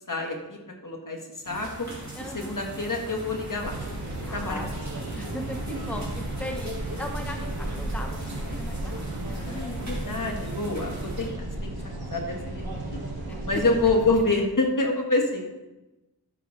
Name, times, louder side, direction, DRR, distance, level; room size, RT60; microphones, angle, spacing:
voice 1, 0.1-1.9 2.3-3.7 4.3-4.6 9.3-11.3 11.6-11.7 12.1-13.0 13.4-15.5, left 2 dB, 55° left, 2 dB, 1.5 m, -27 dB
sound 1, 1.4-11.3, right 1 dB, 45° right, 2.9 m, -40 dB
voice 2, 2.1-2.6 4.3-4.7 4.9-6.7 7.0-9.7 13.3-13.4, left 1 dB, 5° left, 3 dB, 0.9 m, -38 dB
sound 2, 3.6-14.2, right 1 dB, 75° right, 1.7 m, -34 dB
12.5 x 6.2 x 3.3 m, 1.0 s
wide cardioid pair, 55°, 38 cm